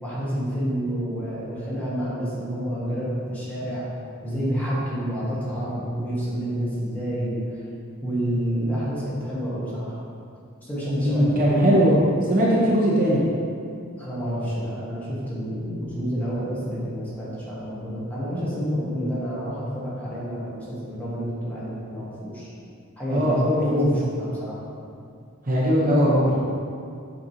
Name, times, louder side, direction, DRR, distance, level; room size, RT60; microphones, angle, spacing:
voice 1, 0.0-3.8 4.2-7.6 8.0-10.0 10.6-12.0 14.0-22.5 23.0-24.6, equal, 5° left, -9 dB, 1.4 m, -29 dB
voice 2, 11.0-12.0 12.3-13.2 23.1-23.9 25.5-26.4, equal, 40° right, -6 dB, 0.9 m, -20 dB
7.8 x 4.2 x 2.8 m, 2.3 s
head